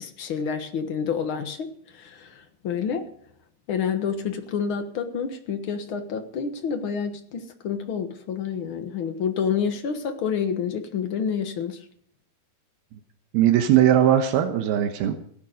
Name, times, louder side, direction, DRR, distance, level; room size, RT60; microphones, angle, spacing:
voice 1, 0.0-1.7 1.9-3.1 3.7-11.8, left 7 dB, 65° left, 6 dB, 1.3 m, -28 dB
voice 2, 13.3-15.2, right 11 dB, 80° right, 6 dB, 3.0 m, -19 dB
17.0 x 10.5 x 5.2 m, 0.64 s
omnidirectional pair, 4.4 m